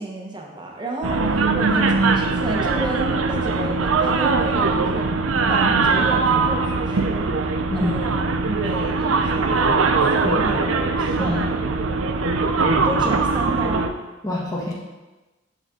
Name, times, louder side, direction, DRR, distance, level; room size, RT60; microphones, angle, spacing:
voice 1, 0.0-5.1 5.4-7.3 7.7-11.4 12.8-13.8, right 2 dB, 25° right, -1 dB, 1.1 m, -31 dB
sound 1, 1.0-13.9, right 4 dB, 90° right, 0.6 m, -21 dB
voice 2, 12.6-13.0 14.2-14.7, left 1 dB, 15° left, -4 dB, 1.4 m, -27 dB
11.5 x 4.1 x 3.8 m, 1.1 s
head